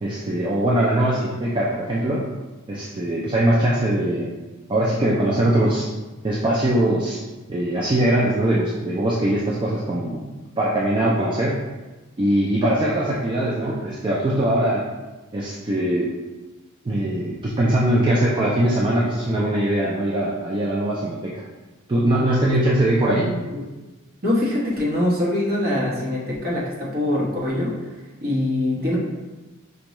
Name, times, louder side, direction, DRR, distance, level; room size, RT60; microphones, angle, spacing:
voice 1, 0.0-2.3 2.7-4.3 4.7-5.9 6.2-7.2 7.5-10.3 10.6-11.6 12.2-14.8 15.3-16.1 16.8-21.5 21.9-23.3, right 1 dB, 20° right, -5 dB, 0.3 m, -21 dB
voice 2, 23.1-23.6 24.2-27.7 28.2-29.0, left 1 dB, 45° right, -5 dB, 1.0 m, -23 dB
5.2 x 2.2 x 3.0 m, 1.2 s
head